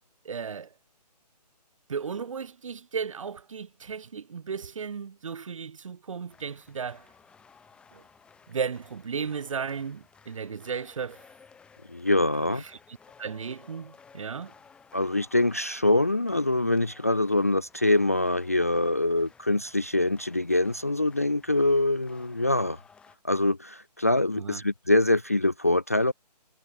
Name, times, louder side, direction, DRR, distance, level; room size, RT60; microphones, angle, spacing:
voice 1, 0.2-0.7 1.9-7.1 7.9-8.0 8.5-11.2 12.4-12.8 13.2-14.5 24.4-24.6, right 6 dB, 50° right, 1.0 m, -35 dB
sound 1, 6.3-23.2, left 5 dB, 5° left, 7.1 m, -56 dB
voice 2, 11.9-12.6 14.9-22.8 23.2-26.1, left 2 dB, 20° left, 0.4 m, -24 dB
hypercardioid pair, 170°, 21 cm